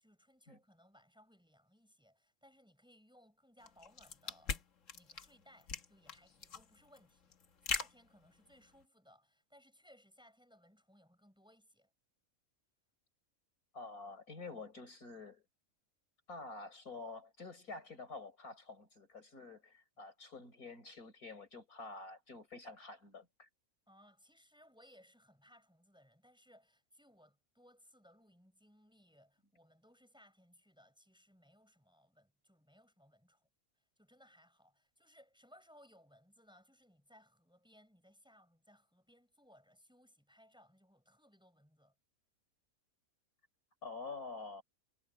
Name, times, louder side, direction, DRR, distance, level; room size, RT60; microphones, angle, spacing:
voice 1, 0.0-4.6 4.9-7.3 7.6-11.9 23.9-33.5 34.0-41.9, equal, 5° right, 6.9 m, -65 dB
sound 1, 3.6-8.8, left 5 dB, 60° left, 1.7 m, -42 dB
voice 2, 13.7-15.4 16.3-23.5 43.8-44.6, left 3 dB, 75° left, 4.9 m, -48 dB
omnidirectional pair, 1.5 m